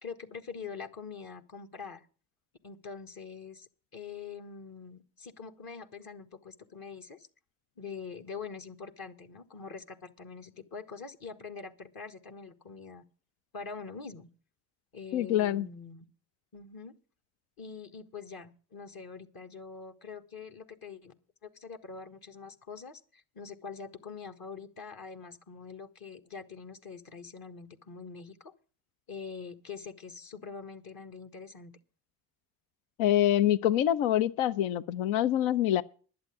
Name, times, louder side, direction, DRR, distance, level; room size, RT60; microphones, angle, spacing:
voice 1, 0.0-2.0 2.6-7.3 7.8-13.0 13.5-14.3 14.9-16.0 16.5-16.9 17.6-21.1 21.4-28.5 29.1-31.7, left 5 dB, 50° left, 1.5 m, -44 dB
voice 2, 15.1-15.7 33.0-35.8, left 12 dB, 75° left, 0.7 m, -25 dB
11.0 x 7.8 x 8.2 m
hypercardioid pair, 50°, 48 cm